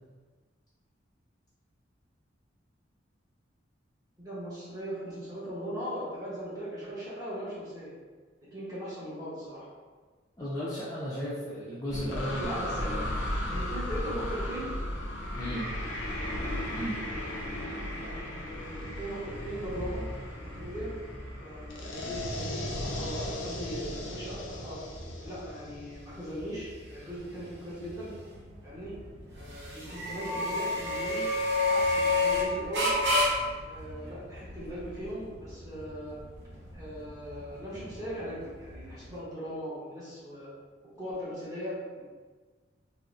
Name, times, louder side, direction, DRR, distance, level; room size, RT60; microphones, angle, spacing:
voice 1, 4.2-7.9 8.5-9.7 12.4-13.1 13.5-14.7 17.9-20.0 20.4-20.9 21.4-24.8 25.2-28.1 28.6-28.9 29.3-31.2 31.7-32.9 33.7-36.2 36.7-40.5 41.0-42.0, equal, 20° right, -10 dB, 0.9 m, -39 dB
voice 2, 10.4-13.1 15.3-15.7 16.8-17.0, equal, 20° left, -10 dB, 0.5 m, -35 dB
sound 1, 11.9-26.4, left 1 dB, 90° left, 0.5 m, -36 dB
sound 2, 22.0-39.2, left 2 dB, 60° right, 0.7 m, -32 dB
3.8 x 2.0 x 2.4 m, 1.4 s
head